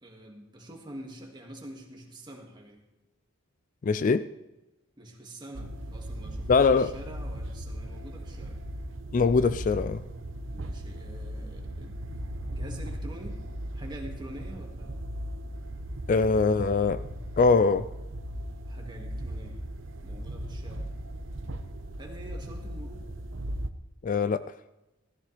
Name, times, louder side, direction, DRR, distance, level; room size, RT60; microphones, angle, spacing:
voice 1, 0.0-2.8 5.0-8.6 10.5-12.0 12.5-13.4 13.7-15.0 18.7-19.6 20.0-20.9 22.0-23.1, right 1 dB, 20° right, 2.0 m, -46 dB
voice 2, 3.8-4.3 6.5-6.9 9.1-10.0 16.1-17.0 17.4-17.9 24.0-24.4, left 4 dB, 40° left, 0.3 m, -22 dB
sound 1, 5.6-23.7, equal, 65° right, 0.9 m, -37 dB
16.0 x 14.0 x 3.3 m
head